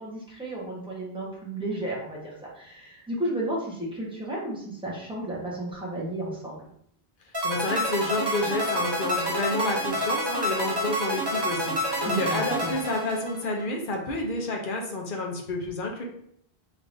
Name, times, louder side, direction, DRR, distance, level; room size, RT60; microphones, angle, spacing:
voice 1, 0.0-6.6 12.0-12.7, right 1 dB, 5° right, -5 dB, 1.0 m, -33 dB
sound 1, 7.3-13.6, equal, 30° right, 0.6 m, -28 dB
voice 2, 7.4-16.0, left 2 dB, 60° left, 1 dB, 0.8 m, -30 dB
3.7 x 3.3 x 2.6 m, 0.68 s
omnidirectional pair, 1.0 m